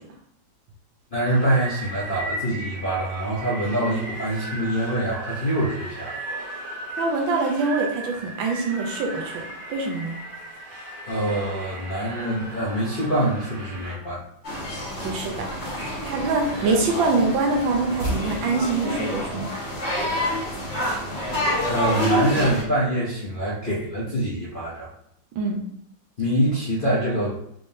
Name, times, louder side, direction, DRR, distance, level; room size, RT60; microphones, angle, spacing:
voice 1, 1.1-6.2 11.1-14.2 21.7-24.9 26.2-27.4, right 1 dB, 55° left, -7 dB, 0.6 m, -25 dB
sound 1, 1.3-14.0, right 1 dB, 45° right, 0.6 m, -36 dB
voice 2, 7.0-9.4 9.7-10.2 15.0-15.5 16.0-19.5 25.4-25.6, right 3 dB, 80° right, 1 dB, 1.5 m, -24 dB
sound 2, 14.4-22.6, equal, 35° left, 1.6 m, -28 dB
3.7 x 3.4 x 2.7 m, 0.73 s
omnidirectional pair, 2.1 m